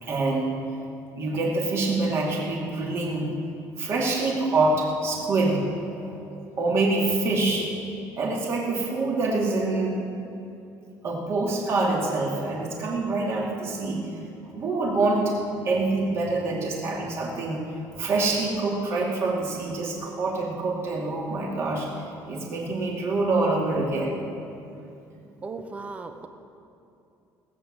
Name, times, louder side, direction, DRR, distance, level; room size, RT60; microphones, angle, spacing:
voice 1, 0.0-0.5 1.2-3.3 3.8-6.2 6.6-7.7 8.1-9.9 11.0-14.1 14.5-17.6 18.0-21.9 22.3-24.2, right 2 dB, 40° right, -2 dB, 2.5 m, -25 dB
voice 2, 25.4-26.3, right 4 dB, 20° right, 7 dB, 0.7 m, -36 dB
18.0 x 8.0 x 7.4 m, 2.7 s
cardioid pair, 180°, 7 cm